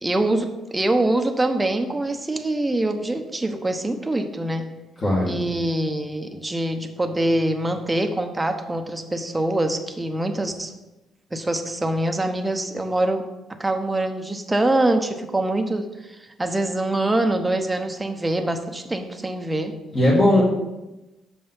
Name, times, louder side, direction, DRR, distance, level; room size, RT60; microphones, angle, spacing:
voice 1, 0.0-4.7 5.3-10.7 11.3-13.2 13.6-19.7, right 1 dB, 10° right, 5 dB, 0.9 m, -24 dB
voice 2, 5.0-5.4 19.9-20.4, left 1 dB, 35° left, -7 dB, 2.0 m, -18 dB
6.9 x 5.4 x 5.5 m, 1.0 s
cardioid pair, 105°, 0 cm